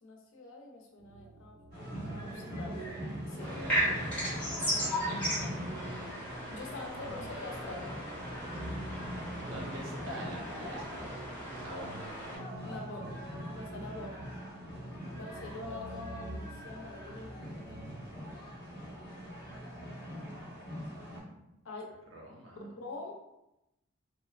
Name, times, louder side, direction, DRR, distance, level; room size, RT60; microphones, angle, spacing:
voice 1, 0.0-1.6 1.9-2.9 3.3-3.5 6.5-7.9 12.6-13.1 13.5-14.3 15.1-17.5 21.6-21.9 22.6-23.1, left 2 dB, 80° left, 0 dB, 0.5 m, -44 dB
sound 1, 1.0-18.1, right 1 dB, 30° right, 0.3 m, -48 dB
sound 2, 1.7-21.2, equal, 45° left, 1.0 m, -43 dB
voice 2, 3.3-4.4 8.5-8.8 9.5-11.2 11.6-12.0 22.1-22.6, equal, 80° right, -2 dB, 0.6 m, -45 dB
sound 3, 3.4-12.4, equal, 5° left, 0.9 m, -36 dB
2.9 x 2.1 x 2.3 m, 0.90 s
head